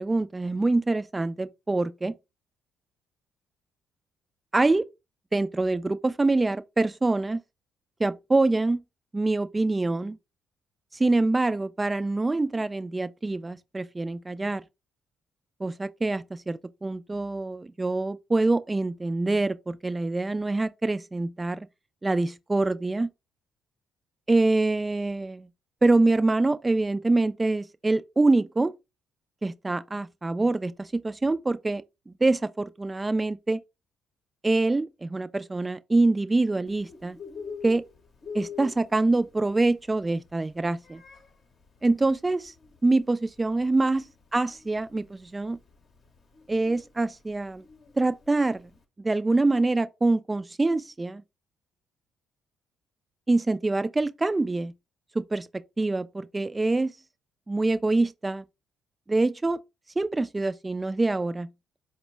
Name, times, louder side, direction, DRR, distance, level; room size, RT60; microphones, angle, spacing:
voice 1, 0.0-2.1 4.5-4.8 5.3-7.4 8.0-8.8 9.1-10.2 11.0-14.6 15.6-21.6 22.0-23.1 24.3-25.5 25.8-28.7 29.4-33.6 34.4-37.2 37.6-37.8 38.3-41.0 41.8-42.5 42.8-44.0 44.3-45.6 46.5-47.6 48.0-48.7 49.0-51.2 53.3-54.7 55.2-56.9 57.5-58.4 59.1-59.6 60.0-61.5, right 2 dB, 20° right, 0.4 m, -25 dB
Bird, 36.7-48.8, left 6 dB, 50° left, 0.7 m, -46 dB
4.3 x 2.1 x 3.2 m
hypercardioid pair, 50°, 0 cm